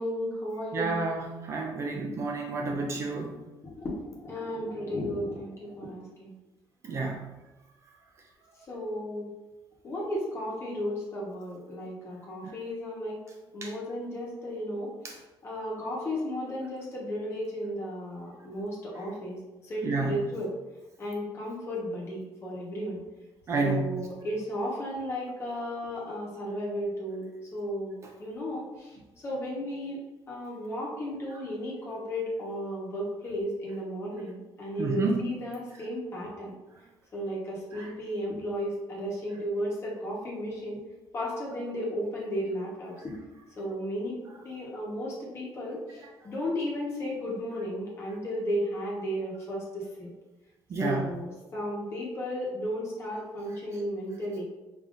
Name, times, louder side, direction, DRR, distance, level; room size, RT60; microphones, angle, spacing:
voice 1, 0.0-1.0 3.6-6.3 8.7-9.3 9.8-13.2 13.5-14.9 15.4-20.5 21.0-23.0 23.6-30.0 30.3-36.5 37.1-40.8 41.1-43.1 43.6-50.1 50.8-54.4, equal, 30° left, -4 dB, 1.1 m, -34 dB
voice 2, 0.7-3.4 6.8-7.3 12.4-12.5 13.6-13.7 15.0-15.1 19.8-20.2 23.5-24.1 34.8-35.3 37.7-37.9 50.7-51.1, right 3 dB, 35° right, 1 dB, 0.4 m, -30 dB
5.5 x 2.7 x 2.5 m, 1.1 s
cardioid pair, 175°, 9 cm